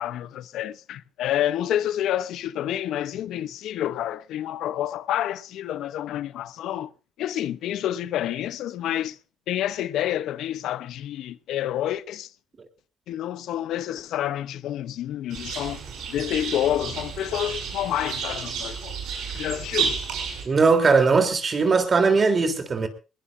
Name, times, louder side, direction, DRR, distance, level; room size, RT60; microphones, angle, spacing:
voice 1, 0.0-6.9 7.2-9.2 9.5-12.3 13.1-15.8 16.1-19.0 19.3-20.0, left 12 dB, 85° left, 0.7 m, -28 dB
sound 1, 15.3-20.4, right 6 dB, 85° right, 7.0 m, -31 dB
voice 2, 20.4-22.9, right 4 dB, 40° right, 3.4 m, -19 dB
21.5 x 20.5 x 2.6 m
cardioid pair, 90°, 0 cm